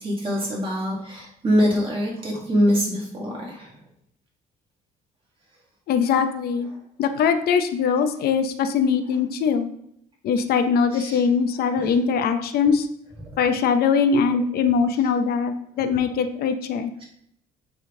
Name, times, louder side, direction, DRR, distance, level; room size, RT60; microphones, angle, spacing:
voice 1, 0.0-3.7 10.9-11.2 11.7-12.0, equal, 30° right, -3 dB, 1.8 m, -24 dB
voice 2, 5.9-6.7 7.0-9.7 10.2-12.9 13.4-16.9, left 6 dB, 65° left, 8 dB, 0.6 m, -21 dB
9.0 x 3.6 x 3.7 m, 0.71 s
cardioid pair, 110°, 17 cm